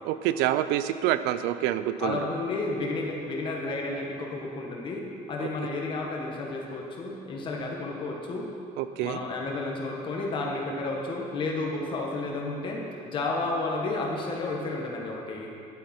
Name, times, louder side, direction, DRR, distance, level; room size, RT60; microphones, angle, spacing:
voice 1, 0.0-2.2 5.4-5.5 8.8-9.2, right 12 dB, 90° right, 12 dB, 0.5 m, -27 dB
voice 2, 2.0-5.0 5.3-8.5 9.0-15.5, left 2 dB, 30° left, 0 dB, 1.3 m, -31 dB
11.0 x 8.8 x 4.4 m, 2.5 s
cardioid pair, 180°, 16 cm